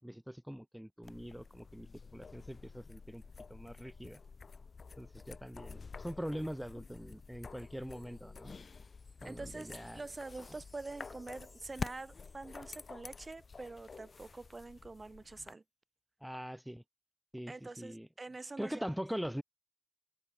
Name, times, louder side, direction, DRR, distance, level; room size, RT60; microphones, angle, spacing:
voice 1, 0.0-3.2 3.5-4.2 5.0-8.5 9.2-10.0 16.2-16.8 17.3-18.1 18.6-19.4, equal, 5° right, 1.2 m, -42 dB
sound 1, 1.0-15.5, left 4 dB, 75° left, 1.7 m, -49 dB
Wind chime, 6.0-13.3 13.5-13.7, left 2 dB, 40° left, 3.6 m, -66 dB
voice 2, 9.2-15.6 17.5-18.9, right 3 dB, 45° right, 1.1 m, -46 dB
wide cardioid pair, 60°, 0 cm